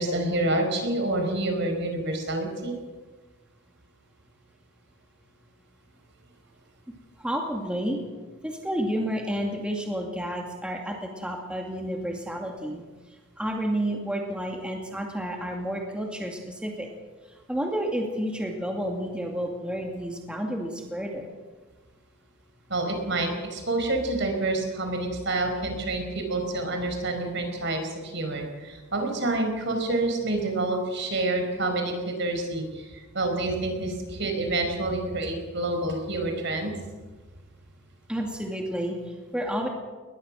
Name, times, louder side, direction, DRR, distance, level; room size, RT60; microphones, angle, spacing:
voice 1, 0.0-2.8 22.7-36.7, right 2 dB, 60° right, 4 dB, 5.1 m, -28 dB
voice 2, 7.2-8.0 8.4-12.8 13.4-16.9 17.5-21.3 38.1-39.7, equal, 5° right, 1 dB, 2.4 m, -30 dB
21.0 x 21.0 x 6.4 m, 1.3 s
head